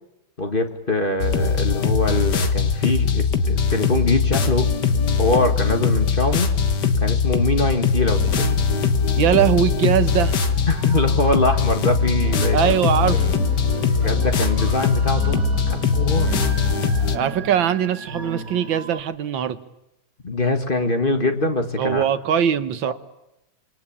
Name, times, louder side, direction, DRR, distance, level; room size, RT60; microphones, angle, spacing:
voice 1, 0.4-4.7 5.2-6.5 7.0-8.5 10.7-12.6 13.1-13.3 14.0-16.3 20.2-22.0 22.9-23.0, left 2 dB, 25° left, 6 dB, 1.8 m, -23 dB
sound 1, 1.2-17.2, left 5 dB, 60° left, 2.0 m, -21 dB
sound 2, 8.1-19.0, right 3 dB, 45° right, 2.5 m, -34 dB
voice 2, 9.2-10.3 12.5-13.3 17.1-19.6 21.8-22.9, right 9 dB, 70° right, 12 dB, 1.9 m, -21 dB
27.5 x 23.0 x 8.7 m, 0.91 s
omnidirectional pair, 2.2 m